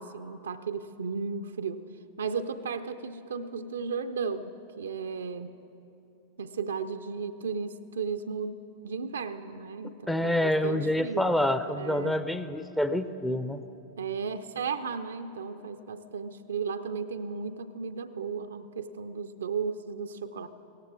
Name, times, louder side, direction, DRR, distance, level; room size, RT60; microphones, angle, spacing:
voice 1, 0.0-1.8 2.2-5.6 6.4-11.3 11.7-12.3 14.0-20.5, right 5 dB, 70° right, 9 dB, 0.4 m, -35 dB
voice 2, 10.1-13.6, left 1 dB, 5° left, 10 dB, 0.5 m, -27 dB
17.0 x 14.5 x 4.7 m, 2.8 s
figure-of-eight pair, 90°, 0 cm